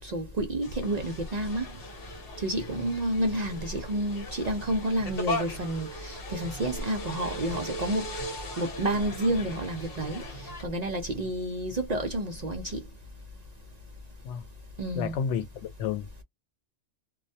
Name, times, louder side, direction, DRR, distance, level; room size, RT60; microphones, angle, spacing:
voice 1, 0.0-1.7 2.4-8.1 8.6-12.8 14.8-15.2, right 1 dB, 55° right, 0.5 m, -30 dB
sound 1, 0.6-10.6, left 1 dB, 55° left, 1.1 m, -39 dB
voice 2, 15.0-16.2, left 7 dB, 85° left, 0.9 m, -31 dB
2.2 x 2.1 x 2.6 m
omnidirectional pair, 1.2 m